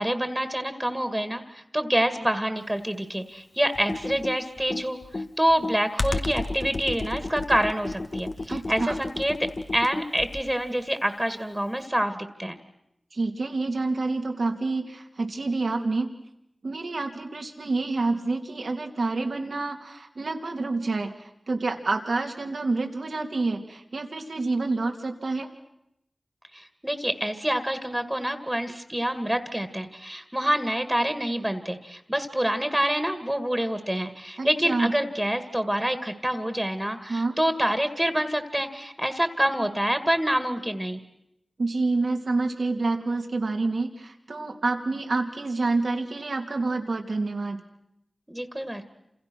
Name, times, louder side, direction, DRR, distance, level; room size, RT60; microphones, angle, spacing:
voice 1, 0.0-12.6 26.5-41.0 48.3-48.8, equal, 10° right, 10 dB, 2.0 m, -27 dB
Computer keyboard, 3.7-10.6, left 2 dB, 60° left, 1.2 m, -32 dB
voice 2, 8.5-8.9 13.1-16.1 16.6-25.5 34.4-34.9 37.1-37.4 41.6-47.6, right 3 dB, 80° right, 4 dB, 2.9 m, -28 dB
29.0 x 27.5 x 6.2 m, 0.82 s
wide cardioid pair, 65°, 0 cm